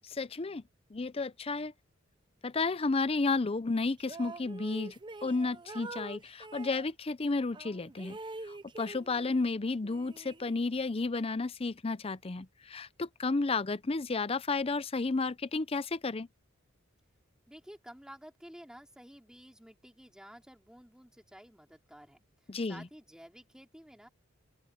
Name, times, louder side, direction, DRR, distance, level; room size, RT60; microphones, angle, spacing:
voice 1, 0.1-0.6 0.9-1.7 2.4-4.9 5.2-8.2 8.5-16.3 22.5-22.9, left 3 dB, 30° left, 0.6 m, -32 dB
sound 1, 4.0-6.9 7.5-9.5 9.8-10.9, right 3 dB, 25° right, 0.6 m, -46 dB
voice 2, 17.5-22.2 22.7-24.1, equal, 5° right, 3.6 m, -52 dB
open air
head